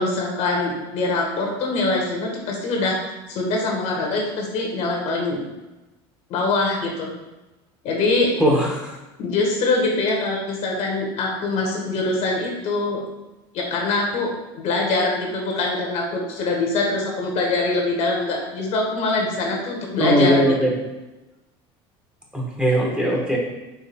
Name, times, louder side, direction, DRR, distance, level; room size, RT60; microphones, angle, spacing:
voice 1, 0.0-3.0 3.3-5.4 6.3-7.1 7.8-8.3 9.2-13.0 13.5-20.6, left 2 dB, 60° left, 0 dB, 1.2 m, -23 dB
voice 2, 8.4-8.8 20.0-20.7 22.3-23.4, equal, 5° right, -2 dB, 0.9 m, -19 dB
4.5 x 3.1 x 3.4 m, 1.0 s
supercardioid pair, 110°, 13 cm